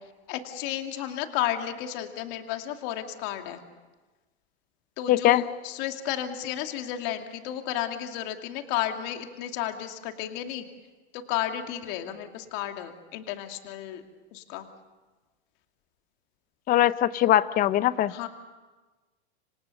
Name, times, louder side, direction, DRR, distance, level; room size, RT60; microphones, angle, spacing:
voice 1, 0.3-3.6 5.0-10.6 11.1-14.0 14.3-14.7 18.1-18.3, left 11 dB, 50° left, 5 dB, 2.5 m, -33 dB
voice 2, 5.1-5.4 16.7-18.1, left 13 dB, 25° left, 16 dB, 0.7 m, -21 dB
27.5 x 25.5 x 6.8 m, 1.2 s
supercardioid pair, 140°, 33 cm